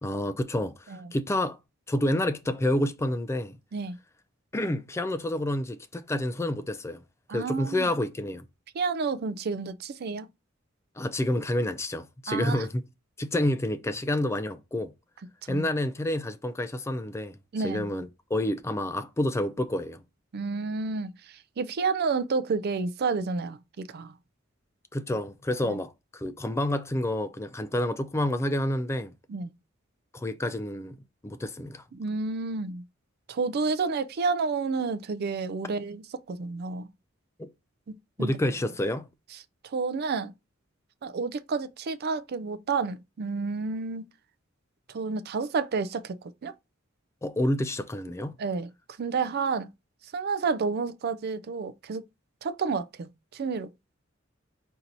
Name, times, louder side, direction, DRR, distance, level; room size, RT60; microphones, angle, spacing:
voice 1, 0.0-1.6 1.9-3.6 4.5-7.0 7.3-8.5 11.0-12.8 13.2-14.9 15.5-17.4 17.6-20.0 24.9-29.1 30.1-31.0 31.2-31.8 37.4-37.5 38.2-39.1 47.2-48.4, left 1 dB, 15° left, 0.4 m, -29 dB
voice 2, 7.3-7.9 8.7-10.3 12.3-12.7 15.4-15.7 17.5-17.9 20.3-24.1 25.6-25.8 29.3-29.5 31.9-32.8 33.3-36.9 38.2-38.3 39.6-40.3 41.0-44.1 44.9-46.2 46.4-46.5 48.4-48.7 49.0-49.7 50.1-52.0 52.4-53.7, right 4 dB, 50° right, 0.4 m, -30 dB
4.4 x 2.7 x 3.9 m
head